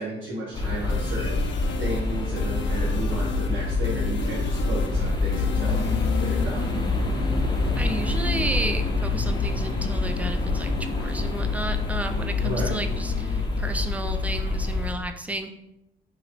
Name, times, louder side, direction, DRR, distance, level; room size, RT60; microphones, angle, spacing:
voice 1, 0.0-1.4 1.8-5.8 6.2-6.6 12.4-12.7, right 1 dB, 80° right, -6 dB, 1.0 m, -33 dB
sound 1, 0.5-14.9, left 3 dB, 20° left, 0.8 m, -26 dB
sound 2, 0.9-6.7, left 9 dB, 70° left, 0.4 m, -37 dB
voice 2, 7.8-15.5, right 1 dB, 5° right, 7 dB, 0.4 m, -32 dB
2.9 x 2.8 x 4.2 m, 0.87 s
cardioid pair, 90°, 20 cm